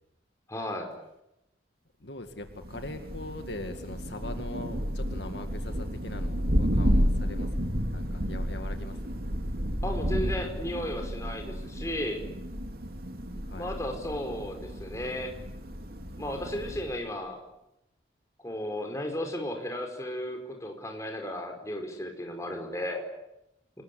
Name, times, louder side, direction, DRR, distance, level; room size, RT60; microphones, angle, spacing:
voice 1, 0.5-0.9 9.8-12.2 13.5-15.3 16.2-17.4 18.4-23.1, left 1 dB, 15° left, 4 dB, 4.9 m, -34 dB
voice 2, 2.0-9.1 13.4-13.7, left 1 dB, 60° left, 6 dB, 2.2 m, -41 dB
Thunder, 2.5-17.1, equal, 50° right, 2.9 m, -31 dB
28.0 x 20.5 x 9.9 m, 0.87 s
head